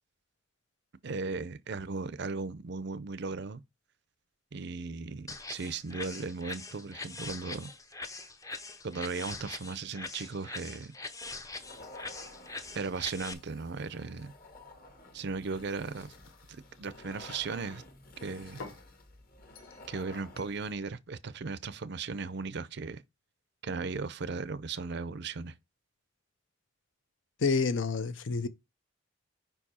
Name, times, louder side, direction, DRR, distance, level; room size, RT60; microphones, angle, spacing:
voice 1, 1.0-3.6 4.5-7.7 8.8-10.9 12.7-14.3 15.1-16.1 16.8-17.8 18.2-18.6 19.9-23.0 23.6-25.6, right 4 dB, 60° right, 0.5 m, -37 dB
sound 1, 5.3-13.3, left 3 dB, 15° left, 0.6 m, -43 dB
sound 2, 11.5-20.8, left 2 dB, 50° left, 1.3 m, -52 dB
sound 3, 15.3-17.6 18.2-18.9 19.6-19.9 20.4-20.6, left 3 dB, 85° left, 1.1 m, -51 dB
voice 2, 27.4-28.5, left 4 dB, 70° left, 0.6 m, -28 dB
5.3 x 4.6 x 4.2 m
head